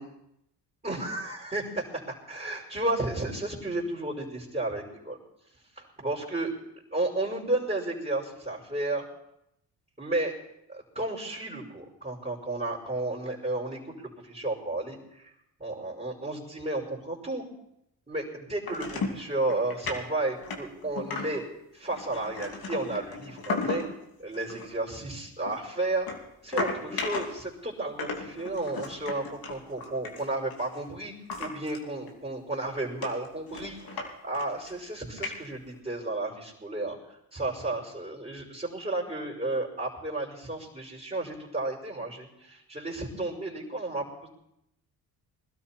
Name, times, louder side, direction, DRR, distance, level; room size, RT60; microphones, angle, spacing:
voice 1, 0.8-1.6 2.1-5.2 5.8-6.5 6.9-9.0 10.0-10.3 10.7-15.3 15.6-17.4 18.1-21.4 21.7-23.8 24.2-26.1 26.4-31.1 31.4-44.3, right 2 dB, 20° right, -3 dB, 5.3 m, -33 dB
sound 1, 18.7-19.2 19.5-20.0 20.4-21.5 21.9-24.0 24.3-24.7 25.5-27.5 28.0-30.8 31.3-31.8 32.1-32.2 32.6-32.7 33.0-34.1 34.3-34.8 35.2-35.8, left 3 dB, 55° left, 2.9 m, -35 dB
21.5 x 12.5 x 4.5 m, 0.81 s
supercardioid pair, 55°, 43 cm